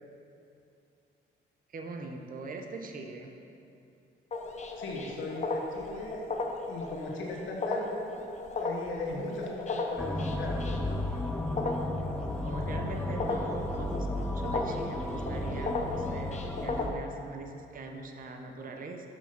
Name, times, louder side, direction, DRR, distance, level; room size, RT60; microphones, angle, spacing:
voice 1, 1.7-3.4 12.4-19.1, right 3 dB, 45° right, 4 dB, 0.8 m, -42 dB
sound 1, 4.3-16.9, left 3 dB, 35° left, 0.8 m, -36 dB
voice 2, 4.7-6.2 6.7-8.1 8.5-10.9, left 2 dB, 75° left, -1 dB, 1.4 m, -38 dB
sound 2, 10.0-16.9, left 1 dB, 5° left, 0.4 m, -34 dB
6.8 x 5.9 x 5.9 m, 2.6 s
cardioid pair, 90°, 20 cm